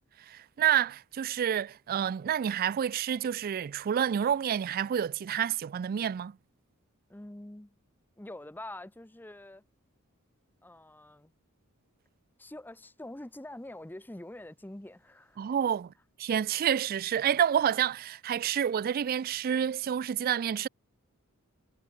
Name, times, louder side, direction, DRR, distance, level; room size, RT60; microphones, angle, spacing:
voice 1, 0.3-6.4 15.4-15.9 16.2-20.7, right 9 dB, 45° right, 0.3 m, -29 dB
voice 2, 7.1-7.8 8.2-9.6 10.6-11.3 12.4-15.5, left 1 dB, 10° left, 0.7 m, -45 dB
head